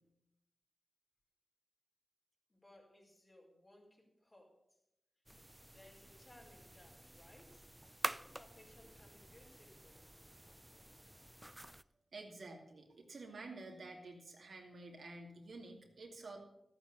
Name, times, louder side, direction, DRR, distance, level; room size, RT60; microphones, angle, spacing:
voice 1, 2.5-4.6 5.7-7.7 8.2-10.0, left 1 dB, 35° left, -1 dB, 5.0 m, -63 dB
sound 1, 5.3-11.8, right 1 dB, 10° right, 0.4 m, -48 dB
voice 2, 12.1-16.4, right 2 dB, 75° right, 1 dB, 2.6 m, -50 dB
13.0 x 8.9 x 6.7 m, 0.84 s
cardioid pair, 60°, 0 cm